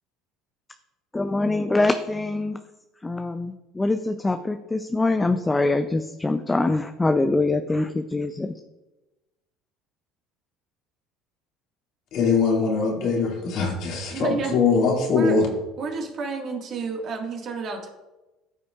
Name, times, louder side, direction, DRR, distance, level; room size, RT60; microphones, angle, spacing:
voice 1, 1.1-2.6 3.0-8.5, left 2 dB, 15° left, 8 dB, 0.5 m, -24 dB
voice 2, 12.1-15.5, left 4 dB, 60° left, -1 dB, 2.3 m, -22 dB
voice 3, 14.1-14.5 15.1-15.4 15.8-17.9, right 4 dB, 50° right, 2 dB, 1.8 m, -30 dB
14.0 x 5.5 x 2.4 m, 1.1 s
supercardioid pair, 85°, 0 cm